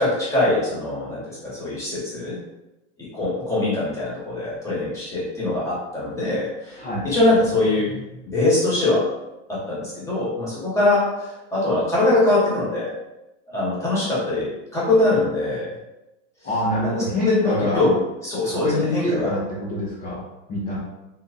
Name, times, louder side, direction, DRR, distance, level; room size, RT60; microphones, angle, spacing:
voice 1, 0.0-2.4 3.0-8.0 8.3-9.0 9.5-12.9 13.5-15.7 16.8-17.9 18.2-19.3, left 2 dB, 10° left, -8 dB, 1.4 m, -22 dB
voice 2, 16.4-17.9 18.4-20.8, equal, 25° left, -8 dB, 0.8 m, -26 dB
3.8 x 2.8 x 2.6 m, 0.96 s
supercardioid pair, 145°, 37 cm